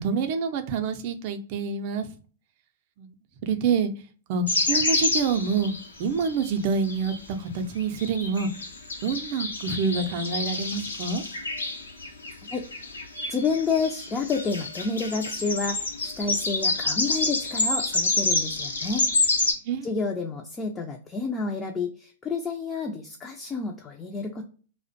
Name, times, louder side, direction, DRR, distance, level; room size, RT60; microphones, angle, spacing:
voice 1, 0.0-2.1 3.0-3.1 3.4-3.9 4.3-5.7 6.0-8.5 9.0-11.2 19.7-19.9, right 5 dB, 45° right, 0.4 m, -27 dB
sound 1, 4.5-6.5 6.8-7.2 7.8-19.5, left 3 dB, 85° left, 0.7 m, -28 dB
voice 2, 13.3-19.1 19.8-24.4, left 4 dB, 20° left, 0.4 m, -29 dB
2.4 x 2.1 x 2.6 m
hypercardioid pair, 110°, 0 cm